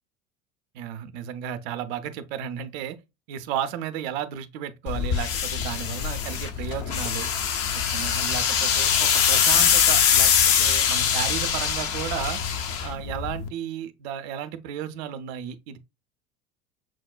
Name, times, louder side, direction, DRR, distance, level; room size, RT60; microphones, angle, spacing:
voice 1, 0.7-3.0 3.3-7.3 7.7-12.4 12.8-15.8, right 9 dB, 55° right, 0.5 m, -33 dB
sound 1, 4.9-13.5, left 8 dB, 35° left, 0.5 m, -23 dB
6.0 x 2.1 x 2.3 m
hypercardioid pair, 80°, 40 cm